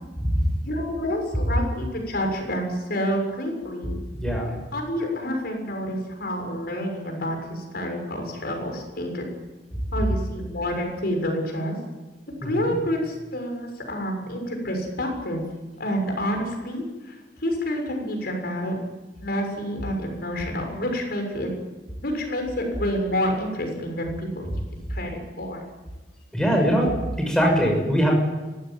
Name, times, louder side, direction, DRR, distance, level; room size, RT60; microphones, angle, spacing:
voice 1, 0.6-4.0 4.7-9.2 9.9-11.7 12.4-15.4 15.8-17.1 17.4-18.7 19.2-21.5 22.0-24.4 24.9-25.7, equal, 60° left, 3 dB, 6.8 m, -28 dB
voice 2, 4.1-4.6 12.4-12.8 26.3-26.9 27.2-28.1, equal, 5° left, 0 dB, 6.7 m, -22 dB
24.5 x 17.0 x 9.5 m, 1.2 s
head